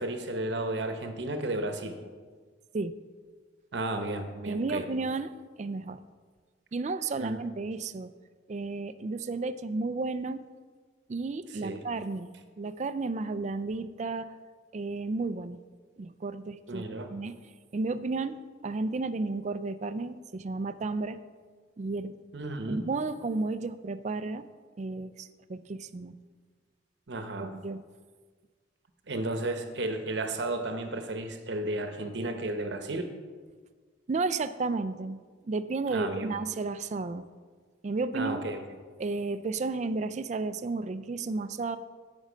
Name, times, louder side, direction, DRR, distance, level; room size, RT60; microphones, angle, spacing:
voice 1, 0.0-2.0 3.7-4.8 7.2-7.3 11.5-11.8 16.7-17.1 22.3-22.9 27.1-27.5 29.1-33.1 35.9-36.3 38.1-38.6, right 2 dB, 65° right, 7 dB, 0.9 m, -33 dB
voice 2, 4.5-6.0 6.7-8.1 8.5-10.4 11.1-12.3 12.6-14.3 14.7-15.6 16.0-17.4 17.7-21.2 21.8-22.1 22.7-24.4 24.8-26.1 27.4-27.8 34.1-35.2 35.4-37.2 37.8-38.4 39.0-41.8, right 3 dB, 40° right, 12 dB, 0.4 m, -32 dB
13.5 x 5.3 x 5.0 m, 1.5 s
head